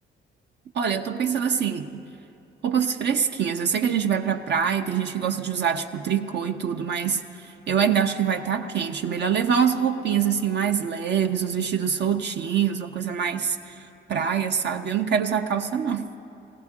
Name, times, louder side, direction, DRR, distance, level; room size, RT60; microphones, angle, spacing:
voice 1, 0.7-2.1 2.6-13.8 14.1-16.1, right 7 dB, 60° right, 5 dB, 0.6 m, -25 dB
20.0 x 16.0 x 3.6 m, 2.7 s
cardioid pair, 85°, 20 cm